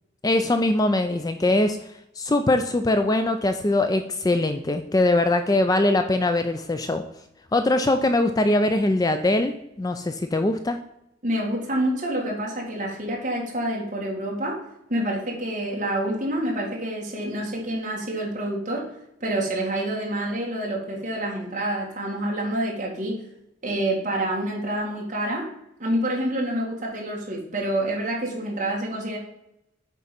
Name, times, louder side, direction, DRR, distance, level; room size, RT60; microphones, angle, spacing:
voice 1, 0.2-1.8 2.2-7.0 7.5-10.8, left 2 dB, 20° left, 7 dB, 0.3 m, -22 dB
voice 2, 11.2-14.6 14.9-18.9 19.2-23.2 23.6-25.5 25.8-29.2, right 1 dB, 40° right, -2 dB, 2.1 m, -27 dB
8.1 x 3.8 x 5.9 m, 0.81 s
head